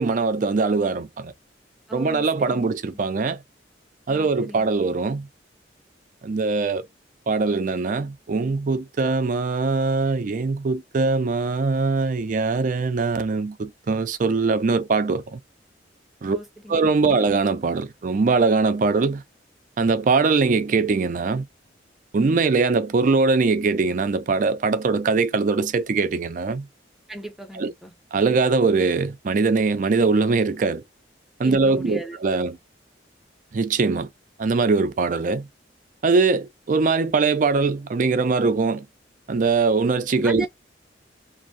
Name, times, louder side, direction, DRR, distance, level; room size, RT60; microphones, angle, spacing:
voice 1, 0.0-1.3 1.9-3.4 4.1-5.3 6.2-6.9 7.3-15.4 16.2-16.4 16.7-19.2 19.8-21.5 22.1-26.7 27.5-27.7 28.1-30.8 31.4-32.6 33.5-34.1 34.4-35.5 36.0-38.9 39.3-40.5, right 4 dB, 45° right, 0.4 m, -22 dB
voice 2, 1.9-2.7 4.1-4.7 16.3-17.1 27.1-27.9 31.4-32.2 40.2-40.5, right 1 dB, ahead, 0.6 m, -36 dB
2.6 x 2.6 x 2.5 m
head